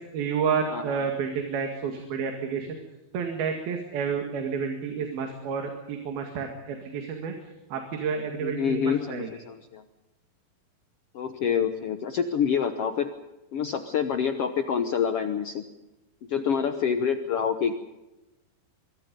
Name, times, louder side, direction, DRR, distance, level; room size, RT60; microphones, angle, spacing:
voice 1, 0.0-2.8 3.1-7.3 7.7-9.3, right 6 dB, 80° right, 4 dB, 3.9 m, -30 dB
voice 2, 8.4-9.8 11.1-13.1 13.5-15.6 16.3-17.7, left 7 dB, 90° left, 8 dB, 1.3 m, -27 dB
24.0 x 23.0 x 5.3 m, 1.0 s
omnidirectional pair, 4.2 m